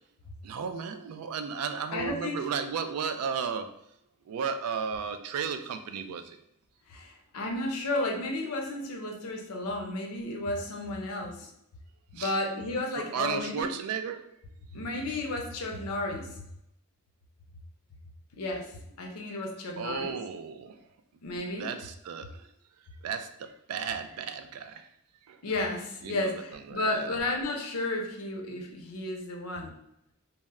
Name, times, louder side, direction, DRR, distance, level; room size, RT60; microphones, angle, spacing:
voice 1, 0.4-3.7 4.3-6.4 12.2-12.3 13.0-14.2 19.8-20.8 21.6-22.5 23.0-24.9 25.3-25.4 26.0-26.3 26.7-27.2, right 6 dB, 75° right, 8 dB, 0.3 m, -34 dB
voice 2, 1.9-2.5 6.9-11.5 12.1-13.7 14.7-16.4 18.3-20.2 21.2-21.7 25.4-29.8, left 2 dB, 80° left, 2 dB, 0.6 m, -33 dB
2.1 x 2.0 x 3.5 m, 0.78 s
head